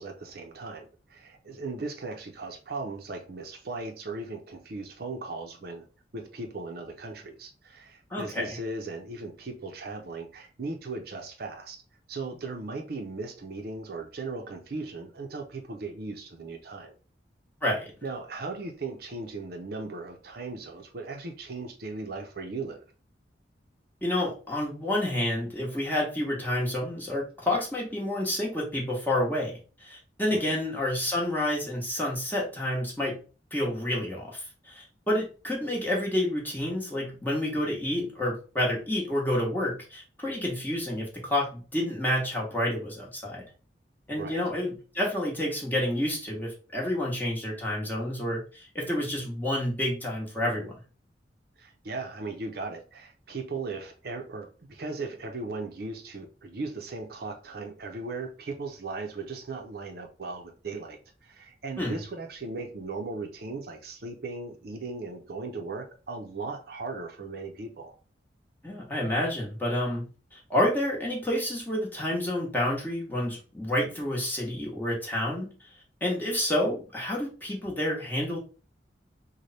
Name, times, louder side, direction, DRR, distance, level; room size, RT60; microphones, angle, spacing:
voice 1, 0.0-5.9 6.1-11.8 12.1-17.0 18.0-22.8 30.3-30.6 44.2-44.4 51.6-68.0, right 3 dB, 60° right, 0.6 m, -37 dB
voice 2, 8.1-8.6 17.6-17.9 24.0-33.2 33.5-43.4 44.1-50.8 61.8-62.0 68.6-75.5 76.0-78.4, left 1 dB, 10° left, 1.1 m, -29 dB
3.3 x 2.1 x 4.0 m
head